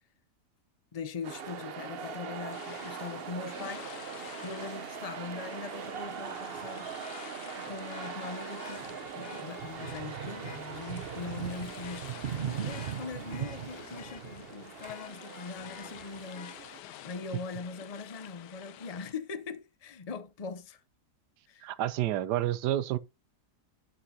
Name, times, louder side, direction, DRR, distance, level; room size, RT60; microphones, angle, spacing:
voice 1, 0.9-6.9 7.6-20.8 21.5-21.7, left 5 dB, 75° left, 0.3 m, -41 dB
sound 1, 1.2-16.8, right 8 dB, 50° right, 0.7 m, -40 dB
sound 2, 2.5-19.1, left 12 dB, 90° left, 1.3 m, -50 dB
Vehicle horn car horn honking, 4.2-4.3 7.0-10.7 11.2-11.4 11.8-14.4 14.8-16.6 18.4-18.5, left 8 dB, 50° left, 0.8 m, -51 dB
voice 2, 21.6-23.0, right 13 dB, 85° right, 1.2 m, -29 dB
11.0 x 5.7 x 2.7 m
omnidirectional pair, 1.7 m